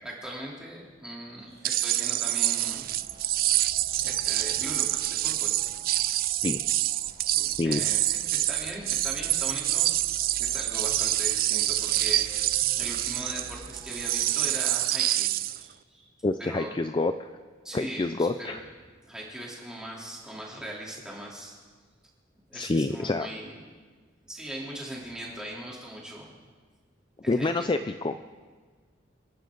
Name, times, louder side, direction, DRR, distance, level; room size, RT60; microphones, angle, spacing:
voice 1, 0.0-2.9 4.0-5.6 7.3-9.9 10.4-12.2 12.5-15.3 15.6-16.1 16.4-16.7 17.6-18.6 19.0-21.5 22.5-23.5 24.2-26.3 27.2-27.7, right 1 dB, 5° right, -4 dB, 3.5 m, -40 dB
sound 1, 1.6-15.6, right 15 dB, 50° right, 0.4 m, -27 dB
sound 2, 2.6-14.5, equal, 35° right, 6.0 m, -49 dB
voice 2, 16.2-17.3 17.7-18.6 22.5-23.3 27.3-28.2, left 2 dB, 25° left, 9 dB, 0.4 m, -27 dB
28.5 x 11.5 x 3.9 m, 1.5 s
head